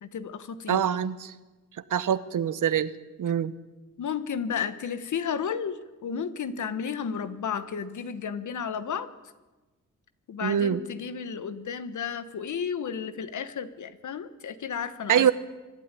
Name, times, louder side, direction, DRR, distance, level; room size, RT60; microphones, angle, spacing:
voice 1, 0.0-0.8 4.0-9.1 10.3-15.3, left 7 dB, 70° left, 12 dB, 1.4 m, -33 dB
voice 2, 0.7-1.3 1.9-2.9 3.2-3.5 10.4-10.8 15.1-15.3, right 9 dB, 75° right, 15 dB, 1.0 m, -24 dB
24.5 x 12.0 x 9.9 m, 1.2 s
cardioid pair, 105°, 31 cm